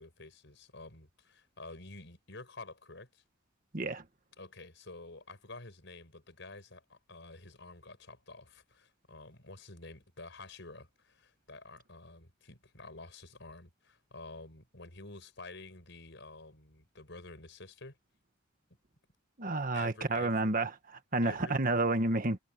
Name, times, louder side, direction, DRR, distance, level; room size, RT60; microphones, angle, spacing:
voice 1, 0.0-3.2 4.4-18.0 19.7-20.5 21.2-21.6, left 3 dB, 65° left, 6.2 m, -49 dB
voice 2, 19.4-20.7 21.1-22.4, right 2 dB, 45° right, 1.5 m, -30 dB
head